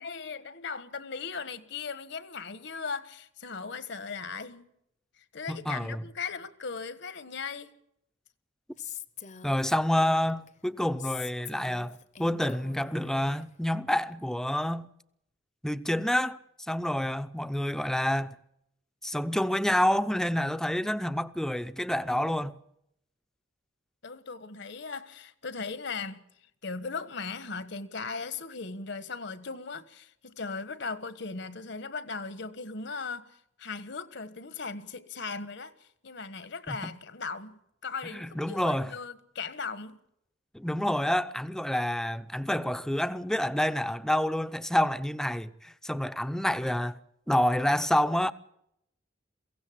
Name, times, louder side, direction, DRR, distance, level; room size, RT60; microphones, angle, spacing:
voice 1, 0.0-4.7 5.3-7.7 24.0-26.2 26.6-40.0, left 4 dB, 65° left, 1.4 m, -38 dB
voice 2, 5.5-6.0 9.4-14.9 15.6-16.4 16.7-18.4 19.0-22.5 36.7-37.0 38.1-38.9 40.5-47.0 47.3-48.3, left 1 dB, 5° left, 0.7 m, -28 dB
Female speech woman speaking, 8.8-10.5 11.0-13.5, left 8 dB, 40° left, 0.9 m, -43 dB
23.0 x 16.5 x 7.4 m
head